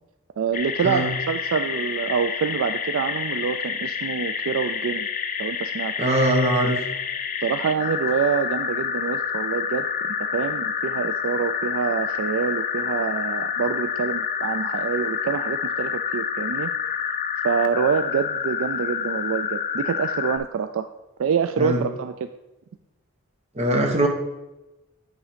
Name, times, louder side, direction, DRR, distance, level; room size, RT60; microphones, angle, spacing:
voice 1, 0.4-5.1 5.4-5.9 7.4-9.9 10.2-16.7 17.4-20.9 21.2-22.1, right 6 dB, 65° right, 9 dB, 0.3 m, -26 dB
sound 1, 0.5-20.4, left 7 dB, 40° left, 0.5 m, -28 dB
voice 2, 6.0-6.8 21.6-21.9 23.6-24.1, right 1 dB, 30° right, 2 dB, 1.1 m, -21 dB
8.7 x 3.9 x 5.1 m, 0.99 s
head